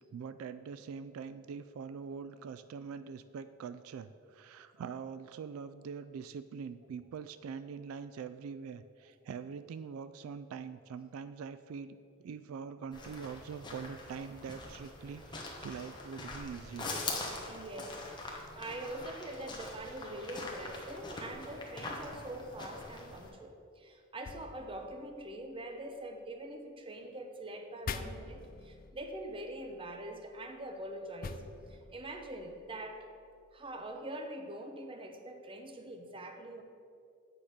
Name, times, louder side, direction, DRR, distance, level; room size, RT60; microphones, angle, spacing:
voice 1, 0.1-16.9 18.3-18.4, right 6 dB, 80° right, 13 dB, 0.3 m, -44 dB
sound 1, 12.9-23.3, left 3 dB, 20° left, 1.1 m, -43 dB
voice 2, 17.5-31.4 31.7-33.1 33.5-36.6, right 1 dB, 25° right, 5 dB, 0.7 m, -44 dB
sound 2, 24.2-26.4 27.8-34.0, left 5 dB, 40° left, 0.4 m, -48 dB
8.5 x 5.0 x 6.0 m, 2.4 s
head